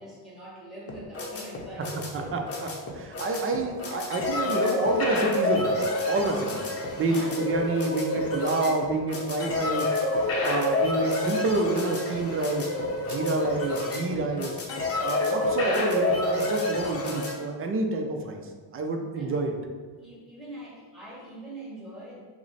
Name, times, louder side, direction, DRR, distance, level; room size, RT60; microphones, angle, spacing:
voice 1, 0.0-2.4 7.1-7.3 19.0-19.3 20.0-22.2, right 1 dB, ahead, -7 dB, 1.4 m, -43 dB
sound 1, 0.9-17.3, left 2 dB, 30° left, 0.7 m, -28 dB
voice 2, 1.9-2.7 2.9-6.7 7.0-9.9 10.4-12.7 13.1-14.6 15.0-19.6, right 2 dB, 30° right, 3 dB, 0.5 m, -28 dB
5.9 x 2.1 x 4.0 m, 1.5 s
cardioid pair, 145°, 44 cm